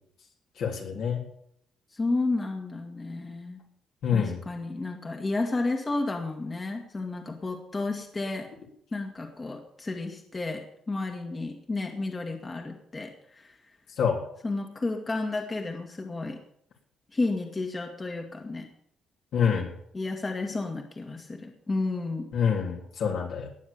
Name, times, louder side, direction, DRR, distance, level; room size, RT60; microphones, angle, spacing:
voice 1, 0.6-1.2 4.0-4.4 14.0-14.2 19.3-19.7 22.3-23.5, left 7 dB, 70° left, 0 dB, 3.7 m, -26 dB
voice 2, 1.9-3.6 4.1-8.5 8.9-13.6 14.4-16.4 17.1-18.7 19.9-22.3, left 3 dB, 30° left, 3 dB, 1.9 m, -32 dB
19.0 x 7.3 x 7.1 m, 0.71 s
cardioid pair, 90°, 0 cm